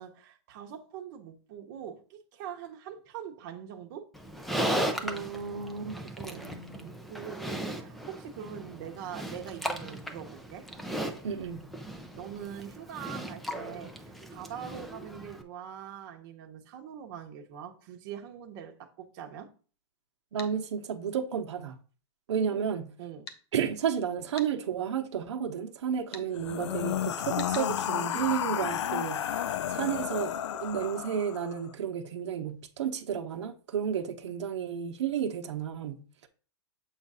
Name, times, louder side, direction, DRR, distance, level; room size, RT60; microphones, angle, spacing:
voice 1, 0.0-4.1 6.2-6.5 7.1-10.7 12.1-19.5 22.4-22.6 23.0-23.3, right 9 dB, 40° right, 0.9 m, -43 dB
Livestock farm animals working animals, 4.1-15.4, right 1 dB, ahead, 0.4 m, -37 dB
voice 2, 5.0-7.0 11.2-11.7 20.3-21.8 22.3-22.9 23.5-29.2 29.7-36.0, right 8 dB, 75° right, 0.8 m, -32 dB
sound 1, 20.4-20.5 23.3-23.4 24.4-24.5 26.1-26.3 27.4-27.7, left 5 dB, 60° left, 0.9 m, -43 dB
sound 2, 26.3-31.6, left 10 dB, 85° left, 0.4 m, -32 dB
7.1 x 2.4 x 5.4 m
hypercardioid pair, 155°, 15 cm